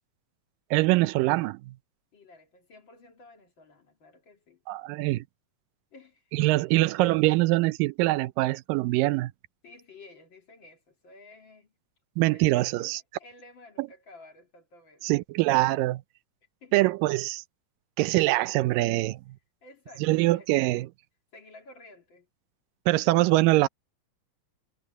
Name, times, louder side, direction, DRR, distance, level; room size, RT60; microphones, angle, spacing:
voice 1, 0.7-1.7 4.7-5.3 6.3-9.3 12.2-13.0 13.8-13.9 15.0-16.0 16.7-17.4 18.0-19.2 20.0-20.9 22.9-23.7, right 19 dB, 85° right, 2.3 m, -23 dB
voice 2, 2.1-4.6 5.9-6.7 9.6-11.7 12.3-15.1 16.6-17.1 19.6-20.8 21.3-22.3, left 2 dB, 40° left, 2.4 m, -53 dB
omnidirectional pair, 3.9 m